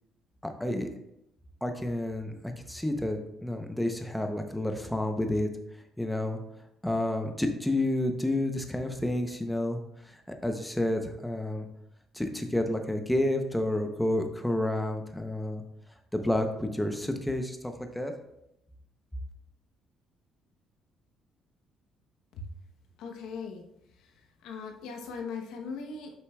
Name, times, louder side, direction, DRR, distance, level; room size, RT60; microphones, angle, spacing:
voice 1, 0.4-0.9 1.6-5.5 6.0-6.4 6.8-9.8 10.3-11.7 12.1-15.6 16.1-18.1, left 1 dB, 5° left, 5 dB, 0.8 m, -30 dB
voice 2, 23.0-23.7 23.9-24.1 24.4-26.2, left 5 dB, 85° left, 3 dB, 1.0 m, -39 dB
8.1 x 5.6 x 2.4 m, 0.81 s
cardioid pair, 105°, 0 cm